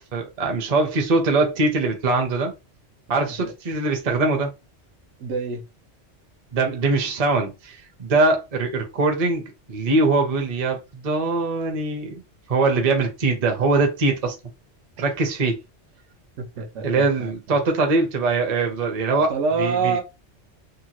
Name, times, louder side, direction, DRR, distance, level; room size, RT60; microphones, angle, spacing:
voice 1, 0.1-2.5 3.1-4.5 6.5-12.2 12.5-14.3 15.0-15.6 16.6-19.3 19.6-20.0, right 3 dB, 40° right, 0.6 m, -22 dB
voice 2, 5.2-5.6 16.6-17.6 19.3-20.0, right 5 dB, 85° right, 1.0 m, -26 dB
2.8 x 2.2 x 2.9 m
omnidirectional pair, 1.2 m